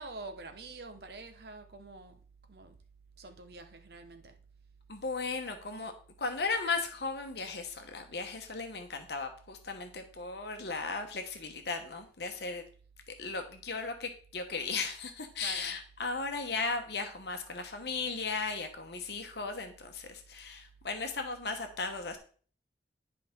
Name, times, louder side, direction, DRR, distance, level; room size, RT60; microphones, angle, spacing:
voice 1, 0.0-2.2 2.5-2.8 3.2-4.4 15.4-15.8, right 3 dB, 60° right, 1.0 m, -46 dB
voice 2, 4.9-5.9 6.2-12.6 13.1-22.2, left 4 dB, 65° left, 1.1 m, -36 dB
10.5 x 5.0 x 3.6 m
head